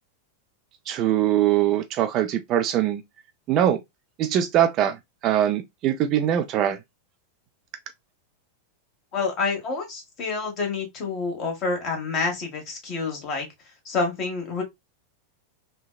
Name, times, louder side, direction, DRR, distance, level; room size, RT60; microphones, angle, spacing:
voice 1, 0.9-3.0 3.5-3.8 4.2-5.0 5.2-6.8, right 11 dB, 35° right, 0.4 m, -22 dB
voice 2, 9.1-13.5 13.8-14.6, left 4 dB, 35° left, 1.2 m, -28 dB
3.2 x 2.2 x 2.3 m
figure-of-eight pair, 90°, 0 cm